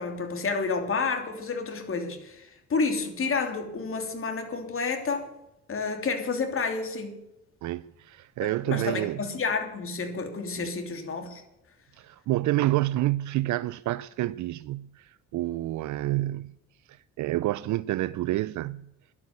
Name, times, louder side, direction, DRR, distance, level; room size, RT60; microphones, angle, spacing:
voice 1, 0.0-5.3 5.7-7.2 8.4-11.4, left 4 dB, 45° left, 3.0 m, -30 dB
voice 2, 7.6-9.2 10.6-10.7 12.0-16.6 16.9-18.9, right 16 dB, 70° right, 0.5 m, -28 dB
11.5 x 8.6 x 9.4 m
cardioid pair, 90°, 30 cm